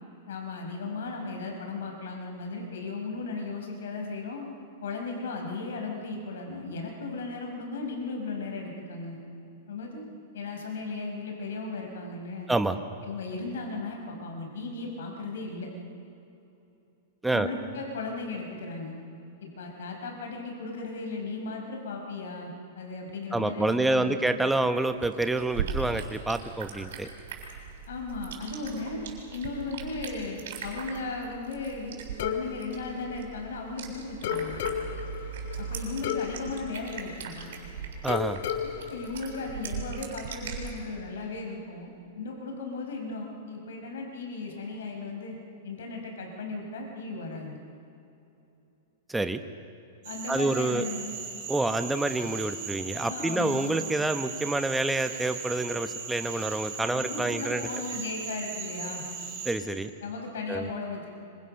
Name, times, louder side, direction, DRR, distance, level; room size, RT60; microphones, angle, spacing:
voice 1, 0.3-4.5 4.8-9.2 9.7-10.0 10.3-12.5 13.0-15.7 17.3-19.0 19.4-24.3 27.9-29.0 29.3-34.6 35.6-37.5 38.6-45.4 45.6-47.6 50.0-51.1 53.1-53.7 56.9-59.1 60.0-61.1, left 3 dB, 85° left, 2 dB, 5.2 m, -36 dB
voice 2, 12.5-12.8 17.2-17.5 23.3-27.1 38.0-38.4 49.1-49.4 50.3-50.8 51.5-57.6 59.4-59.9 60.5-60.7, right 2 dB, 5° right, 8 dB, 1.0 m, -27 dB
sound 1, 24.8-40.7, right 6 dB, 70° right, 7.0 m, -39 dB
sound 2, 32.2-33.8 34.2-37.6 38.1-40.0, left 9 dB, 60° left, 1.5 m, -34 dB
Cricket / Frog, 50.0-59.5, right 6 dB, 45° right, 7.4 m, -38 dB
27.0 x 25.5 x 6.5 m, 2.8 s
supercardioid pair, 160°, 0 cm